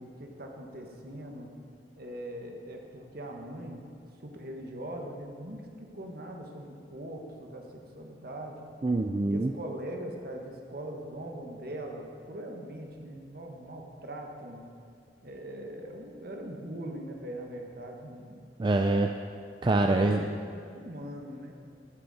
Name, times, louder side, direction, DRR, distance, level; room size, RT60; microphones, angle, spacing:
voice 1, 0.0-1.5 1.9-3.9 4.2-8.6 9.3-14.6 15.2-18.4 19.9-21.5, right 1 dB, 55° right, 2 dB, 1.4 m, -41 dB
voice 2, 8.8-9.5 18.6-19.1 19.6-20.2, right 2 dB, 25° right, 4 dB, 0.4 m, -25 dB
13.0 x 9.7 x 4.2 m, 2.3 s
head